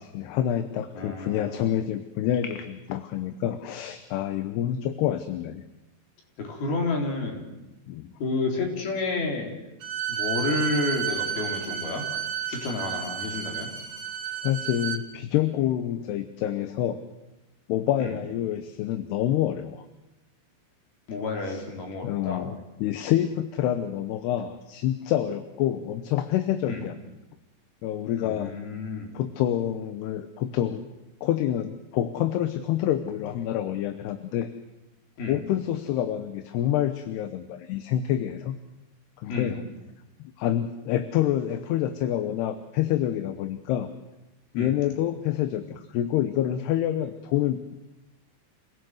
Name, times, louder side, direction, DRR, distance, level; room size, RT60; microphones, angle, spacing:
voice 1, 0.1-5.6 7.9-8.1 12.5-12.6 14.4-17.0 17.7-19.8 21.5-21.6 22.0-26.9 27.8-28.5 29.1-30.8 31.2-34.5 35.3-38.6 39.2-39.6 40.2-43.9 44.5-47.7, left 11 dB, 75° left, 10 dB, 2.9 m, -27 dB
voice 2, 1.0-1.6 6.4-7.5 8.2-9.6 10.1-12.0 12.5-13.7 18.0-18.2 21.1-22.4 26.7-26.9 28.2-29.1 35.2-35.4 39.3-39.6 44.6-44.8, left 3 dB, 60° left, 1 dB, 5.5 m, -30 dB
Bowed string instrument, 9.8-15.0, right 9 dB, 90° right, 3.8 m, -31 dB
27.5 x 17.0 x 7.9 m, 0.96 s
omnidirectional pair, 5.0 m